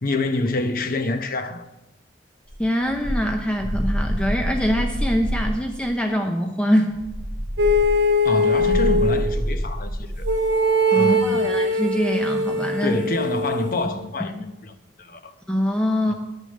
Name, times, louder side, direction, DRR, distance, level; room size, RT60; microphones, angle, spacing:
voice 1, 0.0-1.6 8.2-9.9 10.2-10.3 10.9-11.5 12.8-15.3 16.1-16.2, left 2 dB, 50° left, 0.8 m, -26 dB
sound 1, 2.5-5.7 6.9-10.4, equal, 25° left, 1.2 m, -27 dB
voice 2, 2.6-7.0 10.9-13.0 15.5-16.1, equal, 5° left, 0.6 m, -23 dB
sound 2, 7.6-9.2 10.2-13.8, left 1 dB, 75° right, 1.4 m, -21 dB
10.5 x 6.7 x 6.5 m
head